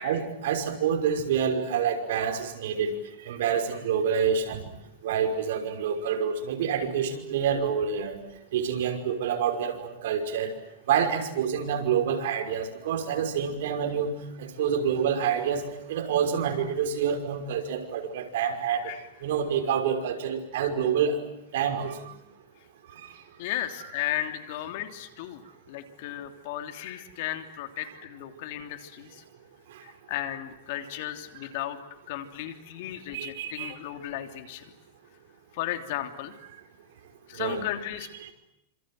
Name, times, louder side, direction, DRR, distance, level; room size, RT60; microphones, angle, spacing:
voice 1, 0.0-3.0 3.3-4.6 5.0-8.2 8.5-10.5 10.9-14.1 14.4-15.6 15.9-18.9 19.2-21.2 21.5-21.9 33.1-33.7 37.4-37.7, right 7 dB, 70° right, 4 dB, 5.7 m, -27 dB
voice 2, 23.4-29.2 29.8-31.8 32.1-34.7 35.5-36.3 37.3-38.1, left 12 dB, 55° left, 7 dB, 3.2 m, -35 dB
29.0 x 26.5 x 7.8 m, 0.82 s
supercardioid pair, 155°, 0 cm